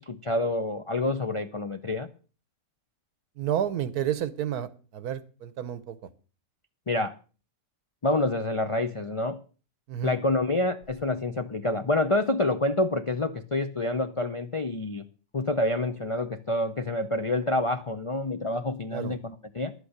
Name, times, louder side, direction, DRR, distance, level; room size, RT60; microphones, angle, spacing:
voice 1, 0.0-2.1 6.9-7.1 8.0-9.4 10.0-15.1 15.3-19.7, left 2 dB, 55° left, 0.3 m, -27 dB
voice 2, 3.4-6.0 9.9-10.2 18.9-19.1, right 10 dB, 85° right, 1.4 m, -30 dB
11.0 x 8.3 x 6.5 m
omnidirectional pair, 1.6 m